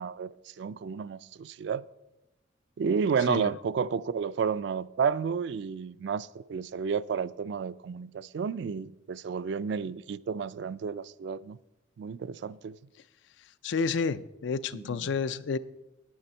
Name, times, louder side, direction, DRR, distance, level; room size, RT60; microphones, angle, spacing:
voice 1, 0.0-1.8 2.8-11.6 12.0-12.7 14.7-14.8, right 6 dB, 60° right, 0.3 m, -31 dB
voice 2, 13.6-15.6, left 5 dB, 65° left, 0.4 m, -30 dB
9.4 x 9.0 x 4.3 m
head